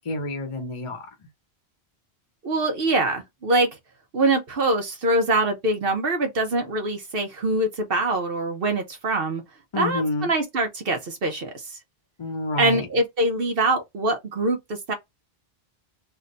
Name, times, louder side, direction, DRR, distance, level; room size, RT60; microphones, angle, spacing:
voice 1, 0.0-1.1 9.7-10.3 12.2-12.9, left 2 dB, 35° left, 0.8 m, -28 dB
voice 2, 2.4-3.7 4.1-9.4 9.8-11.7 12.6-14.9, right 2 dB, 65° right, 1.0 m, -24 dB
3.4 x 2.1 x 3.8 m
omnidirectional pair, 1.0 m